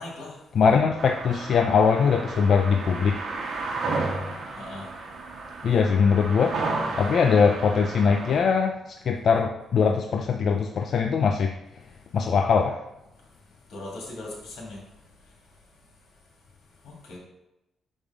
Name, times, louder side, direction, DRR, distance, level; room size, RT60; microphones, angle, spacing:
voice 1, 0.0-0.4 4.6-4.9 13.7-14.8 16.8-17.2, left 2 dB, 85° left, -2 dB, 2.4 m, -39 dB
voice 2, 0.5-3.2 5.6-6.6 7.0-11.5 12.1-12.8, left 6 dB, 60° left, 4 dB, 0.5 m, -21 dB
sound 1, 1.0-8.4, right 3 dB, 70° right, 1.3 m, -33 dB
6.5 x 5.3 x 3.6 m, 0.92 s
cardioid pair, 110°, 0 cm